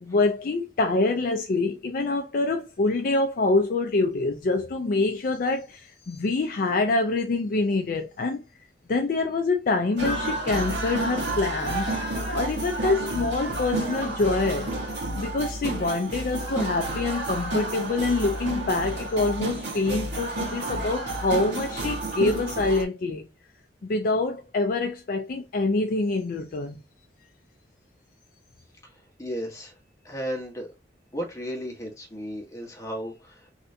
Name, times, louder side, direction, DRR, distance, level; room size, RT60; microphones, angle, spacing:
voice 1, 0.0-8.4 8.9-11.9 12.3-14.8 15.2-23.3 23.8-26.8, left 3 dB, 50° left, 0.4 m, -25 dB
sound 1, 10.0-22.8, right 2 dB, 70° right, 1.6 m, -30 dB
voice 2, 28.8-29.8 30.0-30.7 31.1-33.5, equal, 20° left, 1.1 m, -35 dB
3.3 x 2.7 x 2.6 m
head